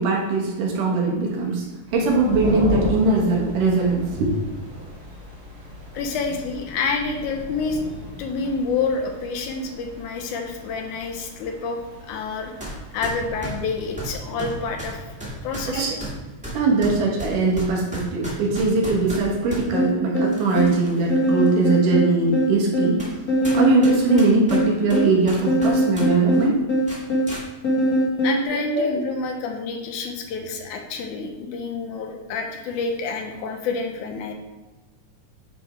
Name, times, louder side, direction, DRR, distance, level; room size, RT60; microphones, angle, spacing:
voice 1, 0.0-1.7 1.9-4.4 15.7-16.0 16.5-23.0 23.5-26.6 28.5-28.9, right 3 dB, 75° right, -2 dB, 2.8 m, -21 dB
sound 1, 1.9-15.9, left 1 dB, 45° right, 1.4 m, -36 dB
voice 2, 5.9-7.8 8.2-11.8 12.1-15.1 15.4-15.9 28.2-34.3, left 4 dB, 75° left, 4 dB, 2.0 m, -28 dB
sound 2, 12.6-12.7 13.0-19.6 20.3-21.0 21.5-21.6 22.3-22.4 23.0-23.2 23.4-26.1 26.3-26.5 26.9-27.4, right 1 dB, 5° right, 0.9 m, -34 dB
sound 3, 19.7-28.4, equal, 55° left, 1.0 m, -22 dB
9.2 x 3.5 x 4.5 m, 1.1 s
omnidirectional pair, 3.8 m